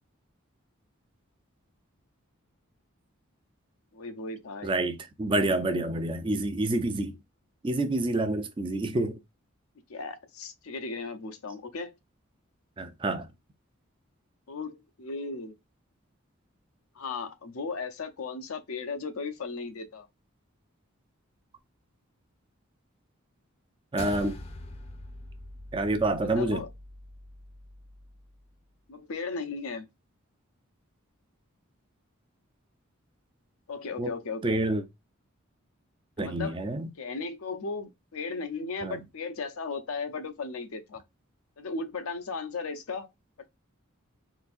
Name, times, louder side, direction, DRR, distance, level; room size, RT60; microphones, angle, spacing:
voice 1, 3.9-4.8 9.9-11.9 14.5-15.5 16.9-20.1 26.3-26.7 28.9-29.9 33.7-34.6 36.2-36.6 37.0-41.0 41.6-43.1, left 4 dB, 90° left, 0.6 m, -36 dB
voice 2, 4.6-7.2 7.6-9.2 12.8-13.3 23.9-24.4 25.7-26.6 34.0-34.1 34.4-34.8 36.2-36.9 38.8-39.0, right 2 dB, 25° right, 0.4 m, -28 dB
sound 1, 24.0-28.5, left 1 dB, 30° left, 0.5 m, -44 dB
3.8 x 2.6 x 2.4 m
head